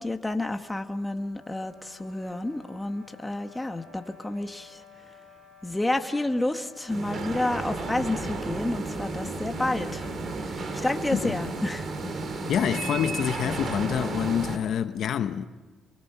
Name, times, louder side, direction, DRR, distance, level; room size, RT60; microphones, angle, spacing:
voice 1, 0.0-4.8 5.6-10.0 10.4-11.9, left 2 dB, 10° left, 1.6 m, -30 dB
sound 1, 1.0-8.5, left 5 dB, 70° right, 7.0 m, -52 dB
sound 2, 6.9-14.6, right 3 dB, 50° right, 2.8 m, -33 dB
voice 2, 12.5-15.5, left 9 dB, 70° left, 0.9 m, -27 dB
29.0 x 23.0 x 5.9 m
cardioid pair, 90°, 0 cm